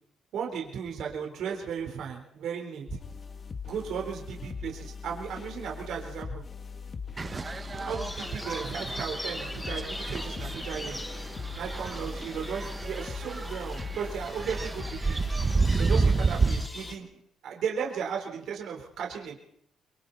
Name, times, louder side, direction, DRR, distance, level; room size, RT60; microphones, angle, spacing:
voice 1, 0.3-3.0 3.6-6.4 7.9-11.0 11.5-15.2 15.8-17.1 17.4-19.4, right 7 dB, 75° right, 1 dB, 4.1 m, -35 dB
sound 1, 2.9-17.0, left 4 dB, 40° left, 1.8 m, -40 dB
sound 2, 7.2-16.7, right 4 dB, 30° right, 1.0 m, -30 dB
sound 3, 8.0-16.9, left 1 dB, 15° left, 2.5 m, -43 dB
26.5 x 23.0 x 4.2 m, 0.70 s
cardioid pair, 90°, 0 cm